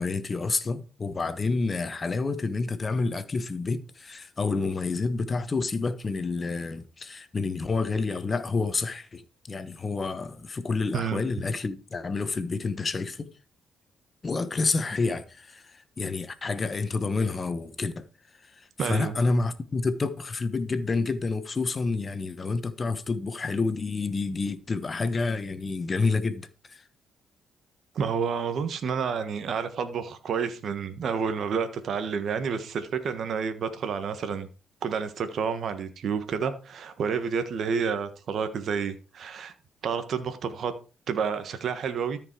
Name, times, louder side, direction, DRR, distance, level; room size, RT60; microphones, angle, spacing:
voice 1, 0.0-13.3 14.2-18.1 18.6-26.8, left 3 dB, 30° left, 1.0 m, -29 dB
voice 2, 18.8-19.1 27.9-34.5 34.8-39.5 39.8-40.7 41.1-42.2, right 6 dB, 60° right, 1.3 m, -29 dB
13.5 x 5.3 x 4.6 m
cardioid pair, 90°, 0 cm